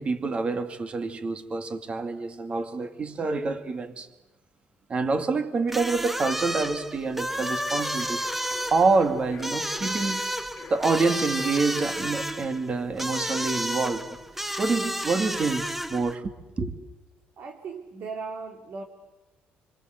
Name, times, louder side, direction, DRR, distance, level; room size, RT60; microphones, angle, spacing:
voice 1, 0.0-4.1 4.9-8.2 8.7-10.2 10.7-14.2 14.6-16.7, right 4 dB, 30° right, 8 dB, 2.4 m, -27 dB
sound 1, 5.7-16.2, equal, 5° right, 1.2 m, -32 dB
sound 2, 7.7-11.7 12.0-12.1, left 7 dB, 40° left, 1.9 m, -45 dB
voice 2, 17.4-18.8, right 4 dB, 50° right, 4 dB, 2.6 m, -37 dB
27.5 x 25.5 x 8.0 m, 1.0 s
cardioid pair, 120°, 4 cm